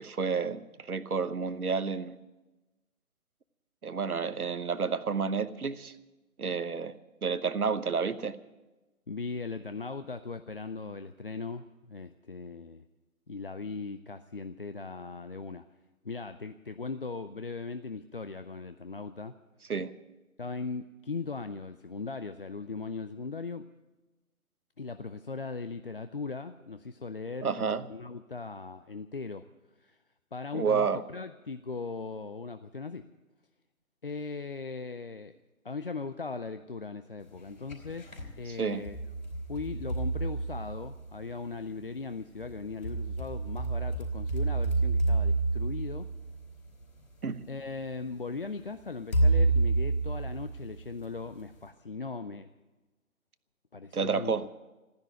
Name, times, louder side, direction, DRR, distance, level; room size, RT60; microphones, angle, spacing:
voice 1, 0.0-2.2 3.8-5.9 6.4-6.9 7.2-8.4 19.7-19.9 27.4-27.9 30.5-31.0 38.5-38.8 47.2-47.5 53.9-54.5, right 5 dB, 85° right, 14 dB, 1.1 m, -30 dB
voice 2, 9.1-12.8 13.3-15.6 16.0-19.3 20.4-23.7 24.8-29.5 29.8-30.0 30.3-33.1 34.0-35.4 35.6-39.0 39.5-46.1 47.5-52.5 53.7-54.4, left 4 dB, 40° left, 10 dB, 0.5 m, -39 dB
sound 1, 37.4-38.3 38.9-41.2 42.4-46.8 47.7-47.8 49.1-51.0, right 3 dB, 70° left, 4.5 m, -29 dB
15.0 x 10.5 x 9.0 m, 1.1 s
figure-of-eight pair, 155°, 43 cm